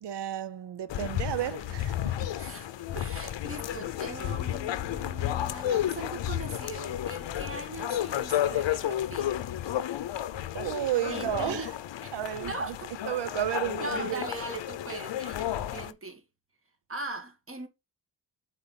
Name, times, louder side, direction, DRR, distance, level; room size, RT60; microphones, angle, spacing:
voice 1, 0.0-2.3 10.5-11.7 12.1-12.5 13.1-14.3, right 12 dB, 70° right, 0.6 m, -32 dB
sound 1, 0.9-15.9, left 12 dB, 80° left, 0.7 m, -32 dB
voice 2, 2.4-9.4 11.1-11.7 12.0-12.1 12.4-12.9 13.8-16.2 16.9-17.7, right 2 dB, 30° right, 1.7 m, -40 dB
8.3 x 4.1 x 3.8 m
wide cardioid pair, 150°, 43 cm